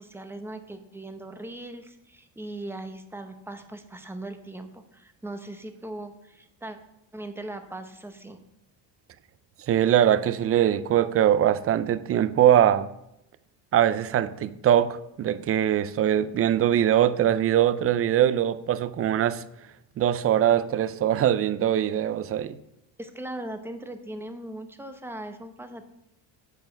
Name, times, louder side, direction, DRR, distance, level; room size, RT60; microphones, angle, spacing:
voice 1, 0.0-6.8 7.1-8.4 23.0-25.9, right 1 dB, 5° right, 0.8 m, -39 dB
voice 2, 9.7-12.9 13.7-19.4 20.0-22.6, right 10 dB, 35° right, 0.4 m, -22 dB
8.1 x 4.8 x 5.1 m
cardioid pair, 100°, 45 cm